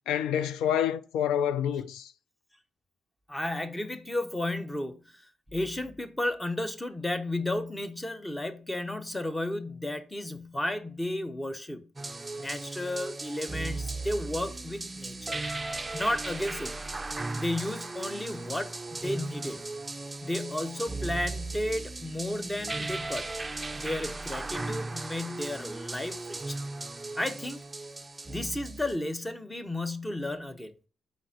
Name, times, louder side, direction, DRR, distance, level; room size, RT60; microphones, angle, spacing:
voice 1, 0.1-2.1, left 9 dB, 85° left, 0.4 m, -28 dB
voice 2, 3.3-5.3 5.5-11.9 12.4-15.4 15.9-16.7 17.3-19.6 20.2-23.3 23.7-26.6 27.2-27.7 28.3-30.7, left 1 dB, 15° left, 0.8 m, -33 dB
sound 1, 12.0-29.0, right 2 dB, 20° right, 0.5 m, -37 dB
5.1 x 3.8 x 5.7 m
cardioid pair, 90°, 0 cm